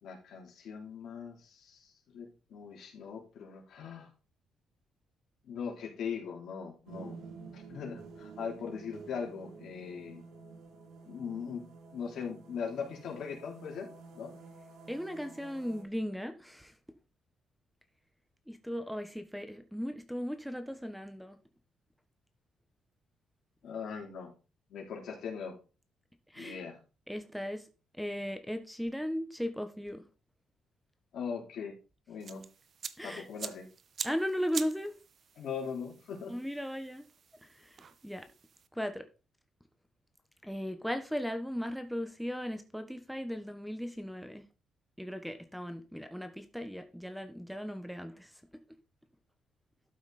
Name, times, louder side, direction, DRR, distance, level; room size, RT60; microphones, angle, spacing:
voice 1, 0.0-4.1 5.4-7.2 7.5-10.2 11.0-14.3 23.6-24.3 24.7-25.6 26.4-26.8 31.1-31.7 32.1-32.5 33.0-33.7 35.4-36.3, left 6 dB, 70° left, 3.6 m, -40 dB
sound 1, 6.8-15.8, right 4 dB, 80° right, 2.3 m, -51 dB
voice 2, 14.9-16.8 18.5-21.4 26.3-26.6 27.1-27.7 27.9-30.0 33.0-33.3 34.0-34.9 36.3-37.0 37.4-38.3 38.7-39.1 40.4-44.4 45.0-48.8, equal, ahead, 1.2 m, -37 dB
sound 2, 32.2-38.7, right 6 dB, 50° right, 0.9 m, -45 dB
12.0 x 5.7 x 4.3 m
cardioid pair, 90°, 0 cm